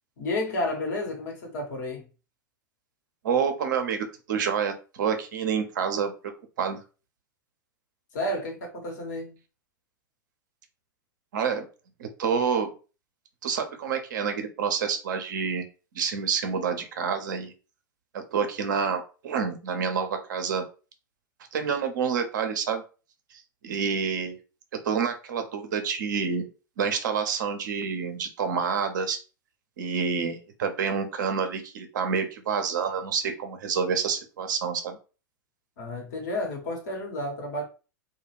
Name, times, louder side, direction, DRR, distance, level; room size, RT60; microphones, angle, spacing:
voice 1, 0.2-2.1 8.1-9.4 35.8-37.7, left 1 dB, 60° left, 1.1 m, -31 dB
voice 2, 3.2-6.1 6.6-6.8 11.3-11.7 12.0-12.7 13.4-15.7 15.9-17.5 18.1-20.6 21.5-22.8 23.6-24.4 24.8-26.5 26.8-29.2 29.8-35.0, right 6 dB, 65° right, 0.6 m, -28 dB
2.3 x 2.2 x 3.2 m
figure-of-eight pair, 95°, 11 cm